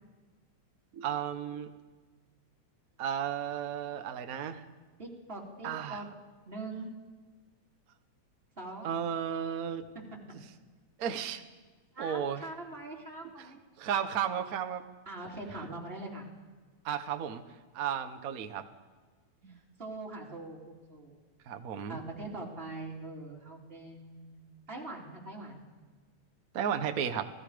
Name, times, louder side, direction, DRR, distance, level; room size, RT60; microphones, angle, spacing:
voice 1, 0.9-1.7 3.0-4.6 5.6-6.0 8.8-9.9 11.0-11.4 12.0-12.5 13.2-13.5 13.8-14.8 16.8-17.4 17.7-18.6 19.4-19.6 21.5-22.0 26.5-27.3, right 8 dB, 65° right, 8 dB, 0.8 m, -34 dB
voice 2, 5.0-6.1 6.5-6.9 8.6-8.9 9.9-10.1 11.9-13.6 15.1-16.3 19.8-21.2 21.9-24.4 24.7-25.7, right 2 dB, 20° right, -3 dB, 3.9 m, -42 dB
28.5 x 18.5 x 5.1 m, 1.4 s
omnidirectional pair, 3.3 m